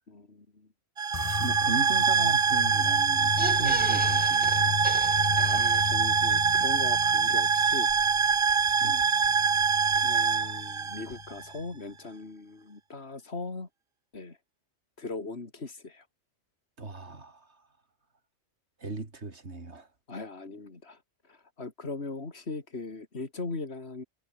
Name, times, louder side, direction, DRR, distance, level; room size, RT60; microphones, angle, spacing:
voice 1, 0.1-0.7 5.3-7.9 9.9-13.7 14.1-14.4 15.0-16.1 20.1-21.0 21.3-24.0, left 3 dB, 65° left, 3.2 m, -39 dB
sound 1, 1.0-11.5, right 6 dB, 35° right, 0.6 m, -24 dB
sound 2, 1.1-11.7, left 7 dB, 40° left, 0.6 m, -37 dB
voice 2, 1.2-4.8 8.8-9.1 16.8-17.7 18.8-19.9, right 3 dB, 75° right, 3.3 m, -37 dB
sound 3, 3.2-6.2 6.6-6.7 6.9-7.0, right 1 dB, 10° right, 1.5 m, -37 dB
omnidirectional pair, 1.2 m